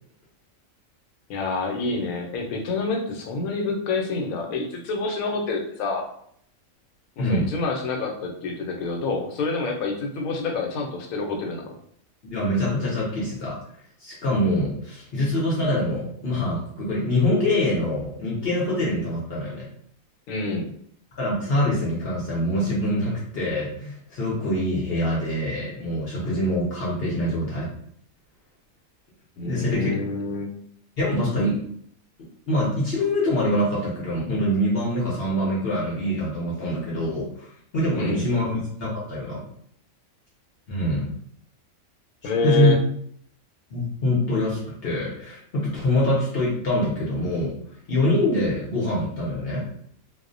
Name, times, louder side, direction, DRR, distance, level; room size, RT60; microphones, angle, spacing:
voice 1, 1.3-6.1 7.2-11.8 20.3-20.7 29.4-30.5 37.9-38.3 42.2-42.8, left 3 dB, 80° left, 2 dB, 1.0 m, -27 dB
voice 2, 7.2-7.5 12.2-13.6 14.0-19.7 21.2-27.7 29.4-29.9 31.0-31.6 32.5-37.5 37.7-39.4 40.7-41.1 42.2-42.7 43.7-47.5 47.9-49.7, left 1 dB, 55° left, -5 dB, 0.7 m, -24 dB
2.4 x 2.0 x 2.5 m, 0.65 s
omnidirectional pair, 1.5 m